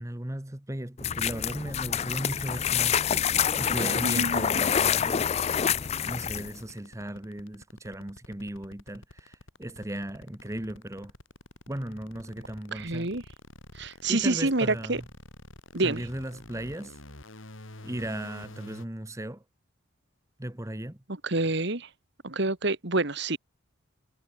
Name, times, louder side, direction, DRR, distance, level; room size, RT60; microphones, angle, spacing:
voice 1, 0.0-5.3 6.0-11.1 11.7-13.1 14.1-15.0 15.8-17.0 17.8-19.4 20.4-21.0, right 1 dB, 15° right, 1.1 m, -36 dB
sound 1, 1.0-6.6, left 8 dB, 30° left, 0.4 m, -27 dB
sound 2, 1.9-18.9, left 1 dB, 75° left, 3.8 m, -48 dB
voice 2, 3.8-4.5 12.7-13.2 13.8-15.0 15.7-16.1 21.2-21.9 22.2-23.4, right 2 dB, 60° right, 2.0 m, -27 dB
head